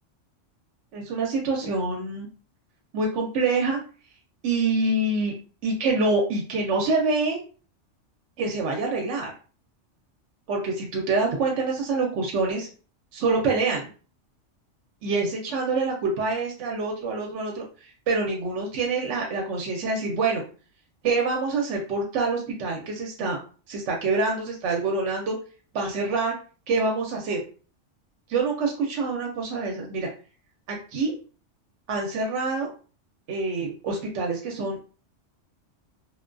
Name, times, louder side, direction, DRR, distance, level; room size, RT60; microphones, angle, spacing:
voice 1, 0.9-2.3 2.9-3.8 4.4-5.3 5.6-7.4 8.4-9.3 10.5-12.7 13.1-13.9 15.0-20.4 21.0-23.4 23.7-25.3 25.7-26.3 26.7-27.4 28.3-30.1 30.7-31.2 31.9-32.7 33.3-34.8, right 3 dB, 75° right, 1 dB, 0.9 m, -26 dB
2.4 x 2.2 x 2.4 m, 0.38 s
omnidirectional pair, 1.3 m